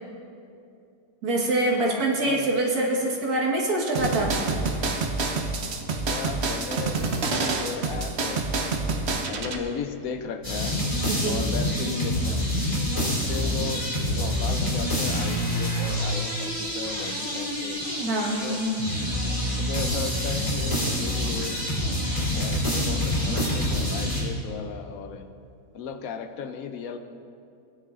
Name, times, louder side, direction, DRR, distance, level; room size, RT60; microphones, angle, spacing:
voice 1, 1.2-4.6 11.1-11.4 18.1-18.4, right 2 dB, 85° right, -1 dB, 1.9 m, -25 dB
voice 2, 1.8-2.5 6.1-10.8 11.2-12.4 12.9-17.8 18.4-18.6 19.6-21.6 22.2-25.3 25.7-27.0, left 6 dB, 75° left, 8 dB, 1.1 m, -36 dB
sound 1, 3.9-9.6, right 3 dB, 55° right, 0.9 m, -27 dB
sound 2, 10.4-24.2, equal, 25° left, 3.1 m, -26 dB
16.5 x 9.9 x 2.4 m, 2.5 s
omnidirectional pair, 1.6 m